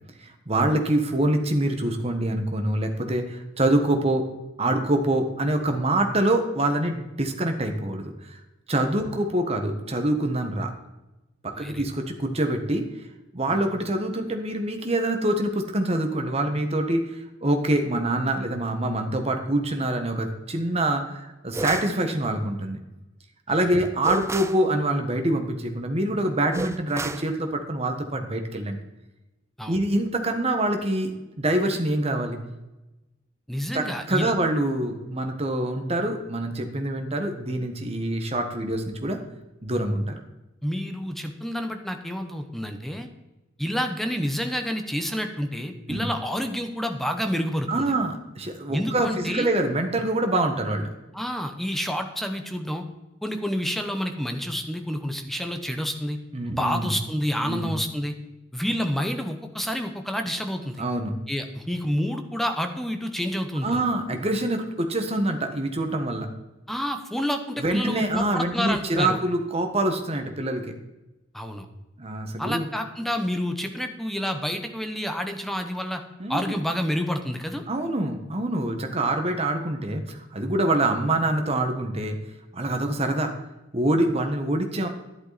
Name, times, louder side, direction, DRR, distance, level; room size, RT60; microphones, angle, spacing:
voice 1, 0.2-4.2 4.6-8.4 8.7-10.7 11.4-12.9 13.3-17.0 17.4-22.8 23.5-28.8 29.7-31.1 31.4-32.4 33.7-39.2 39.6-40.2 45.9-46.1 47.7-50.9 56.3-56.9 57.4-57.7 60.8-61.2 63.6-66.3 67.6-70.7 72.0-72.7 76.2-76.6 77.7-82.1 82.5-83.3 83.7-84.9, right 1 dB, 35° right, 5 dB, 1.5 m, -25 dB
voice 2, 11.5-11.8 13.5-13.7 23.5-23.6 29.6-29.8 33.5-34.3 40.6-43.1 43.6-47.9 48.7-49.5 51.1-52.9 53.2-56.2 56.5-58.1 58.5-60.8 61.3-63.8 66.7-69.2 71.3-71.7 72.4-76.0 76.3-77.6, equal, ahead, 5 dB, 1.0 m, -29 dB
sound 1, 21.5-22.0 24.0-24.6 26.5-27.3, right 2 dB, 15° right, 0.4 m, -32 dB
11.5 x 11.0 x 4.2 m, 1.0 s
head